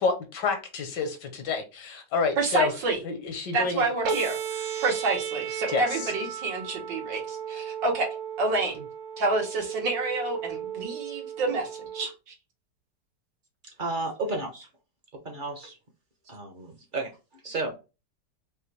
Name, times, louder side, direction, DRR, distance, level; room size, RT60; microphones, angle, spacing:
voice 1, 0.0-2.7 3.0-3.8 4.7-4.8 5.7-6.1, left 4 dB, 75° left, 1.6 m, -29 dB
voice 2, 2.4-3.0 3.5-4.4 4.8-8.1 8.4-8.8 9.2-12.3, right 3 dB, 85° right, 2.1 m, -28 dB
sound 1, 4.0-12.1, right 8 dB, 60° right, 1.1 m, -35 dB
voice 3, 13.6-14.7 15.1-15.8 16.3-17.8, right 2 dB, 35° right, 0.8 m, -33 dB
5.3 x 2.6 x 3.2 m
omnidirectional pair, 1.9 m